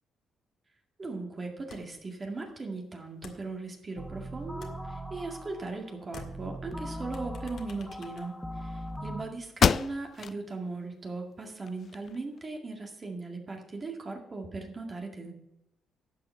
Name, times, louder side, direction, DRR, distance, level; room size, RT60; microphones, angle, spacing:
voice 1, 1.0-15.3, right 3 dB, 35° right, 1 dB, 2.1 m, -38 dB
sound 1, 1.7-2.1 2.4-4.1 4.4-5.8 6.0-9.1, left 5 dB, 70° left, 1.8 m, -52 dB
sound 2, 4.0-9.2, equal, 5° left, 1.1 m, -40 dB
sound 3, 9.0-9.1 9.5-10.4 10.9-11.0 11.5-12.4, left 7 dB, 50° left, 0.3 m, -27 dB
11.5 x 6.0 x 7.6 m, 0.87 s
cardioid pair, 90°, 0 cm